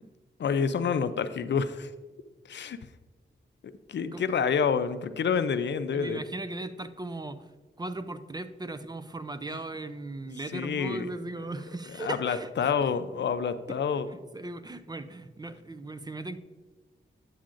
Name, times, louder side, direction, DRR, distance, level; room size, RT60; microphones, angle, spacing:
voice 1, 0.4-1.9 2.5-2.8 3.9-6.2 10.5-11.1 12.0-14.1, left 6 dB, 65° left, 12 dB, 0.5 m, -28 dB
voice 2, 5.9-7.5 7.8-12.7 13.6-13.8 14.1-16.4, right 2 dB, 20° right, 12 dB, 0.4 m, -38 dB
8.8 x 8.3 x 2.5 m, 1.3 s
cardioid pair, 65°, 20 cm